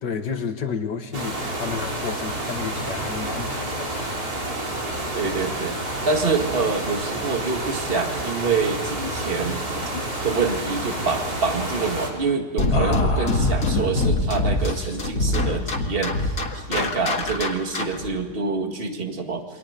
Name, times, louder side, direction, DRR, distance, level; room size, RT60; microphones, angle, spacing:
voice 1, 0.0-4.1, left 6 dB, 85° left, 7 dB, 2.2 m, -31 dB
sound 1, 1.1-12.1, right 1 dB, 60° right, 4.4 m, -29 dB
voice 2, 5.1-5.8 6.0-9.6 10.2-19.4, right 4 dB, 35° right, 4 dB, 2.2 m, -26 dB
sound 2, 9.4-9.6 9.8-10.1 10.4-11.1 12.7-14.0 14.6-15.2, left 3 dB, 35° left, 2.3 m, -32 dB
sound 3, 12.6-18.1, left 2 dB, 55° left, 2.3 m, -23 dB
29.0 x 23.5 x 5.2 m, 1.3 s
omnidirectional pair, 1.8 m